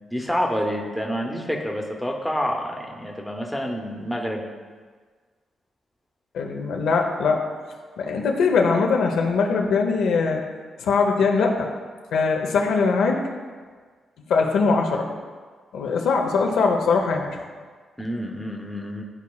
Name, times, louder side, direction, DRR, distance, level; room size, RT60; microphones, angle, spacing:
voice 1, 0.1-4.4 18.0-19.0, equal, ahead, 0 dB, 0.7 m, -28 dB
voice 2, 6.3-7.4 8.0-10.4 10.8-11.7 12.1-13.2 14.3-15.1 15.7-17.4, left 4 dB, 90° left, 2 dB, 0.7 m, -21 dB
11.0 x 4.2 x 2.3 m, 1.5 s
cardioid pair, 135°, 0 cm